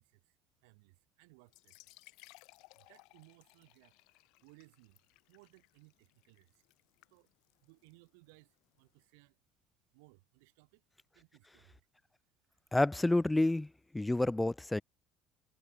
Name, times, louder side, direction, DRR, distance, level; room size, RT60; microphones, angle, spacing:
voice 1, 0.0-1.9 2.8-5.0 5.3-6.6 7.1-7.3 7.6-9.4 9.9-10.8 11.1-11.9 12.5-12.6, right 30 dB, 80° right, 6.4 m, -63 dB
sound 1, 1.4-9.0, left 25 dB, 75° left, 2.2 m, -63 dB
voice 2, 12.7-13.7 13.9-14.8, left 2 dB, 10° left, 0.3 m, -29 dB
hypercardioid pair, 75°, 0 cm